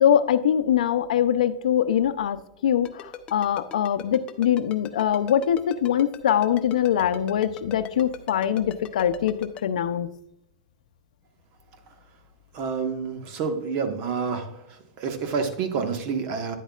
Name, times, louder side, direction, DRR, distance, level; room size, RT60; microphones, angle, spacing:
voice 1, 0.0-10.1, left 9 dB, 85° left, 10 dB, 0.6 m, -23 dB
Ringtone, 2.8-9.6, left 10 dB, 25° left, 0.7 m, -39 dB
voice 2, 12.5-14.5 15.0-16.6, right 5 dB, 45° right, 6 dB, 1.4 m, -28 dB
10.0 x 8.1 x 2.4 m, 0.80 s
supercardioid pair, 140°, 4 cm